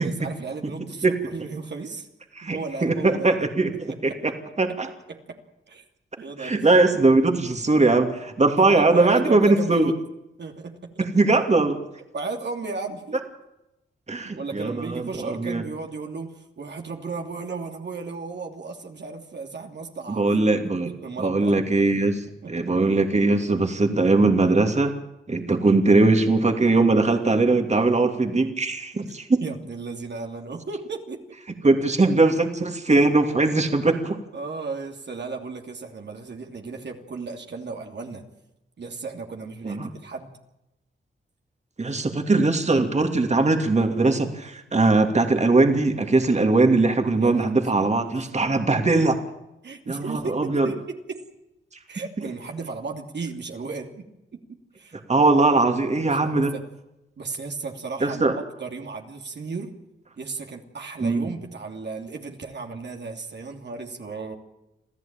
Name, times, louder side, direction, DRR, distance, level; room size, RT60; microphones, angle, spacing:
voice 1, 0.0-2.1 2.4-3.3 3.9-4.2 5.1-5.4 5.7-5.8 6.2-6.7 8.6-10.0 10.4-11.1 12.1-13.2 14.3-20.2 20.8-21.6 22.4-22.5 27.0-27.1 29.0-29.1 29.4-31.2 34.3-38.3 38.8-40.3 41.8-42.1 42.4-42.5 47.2-47.5 47.7-48.6 49.6-51.2 51.9-54.4 54.8-55.0 55.8-56.7 57.2-59.7 60.2-64.4, right 4 dB, 60° right, 3 dB, 2.9 m, -35 dB
voice 2, 2.4-4.3 4.6-4.9 6.4-9.9 11.1-11.8 14.1-15.6 20.1-20.9 21.2-24.9 25.3-29.4 31.6-34.2 39.6-39.9 41.8-49.2 49.9-50.7 55.1-56.5 58.0-58.4 61.0-61.3, right 3 dB, 35° right, 5 dB, 2.9 m, -20 dB
27.0 x 15.0 x 9.0 m, 0.91 s
cardioid pair, 60°, 20 cm